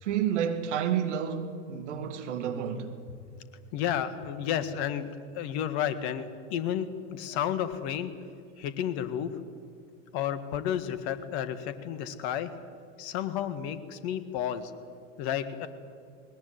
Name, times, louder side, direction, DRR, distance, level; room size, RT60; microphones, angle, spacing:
voice 1, 0.0-2.9, right 8 dB, 65° right, 2.5 m, -30 dB
voice 2, 3.7-8.1 8.6-9.3 10.1-12.5 13.0-14.7 15.2-15.7, left 9 dB, 55° left, 2.0 m, -32 dB
20.5 x 20.0 x 9.8 m
figure-of-eight pair, 75°, 38 cm